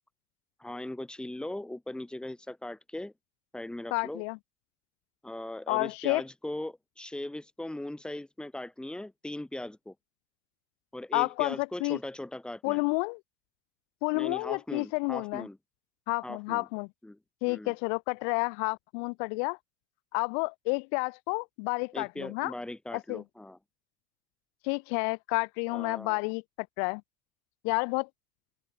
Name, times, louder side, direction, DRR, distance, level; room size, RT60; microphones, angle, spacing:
voice 1, 0.6-3.1 3.5-4.2 5.2-9.9 10.9-12.8 14.1-15.6 16.2-16.7 17.0-17.2 17.5-17.7 21.9-23.6 25.7-26.3, left 1 dB, 5° left, 1.9 m, -39 dB
voice 2, 3.9-4.4 5.7-6.2 11.1-12.0 12.6-13.2 14.0-15.5 16.1-16.9 17.4-19.6 20.1-22.5 22.9-23.2 24.6-27.0 27.6-28.1, left 40 dB or more, 85° left, 0.4 m, -30 dB
cardioid pair, 135°, 19 cm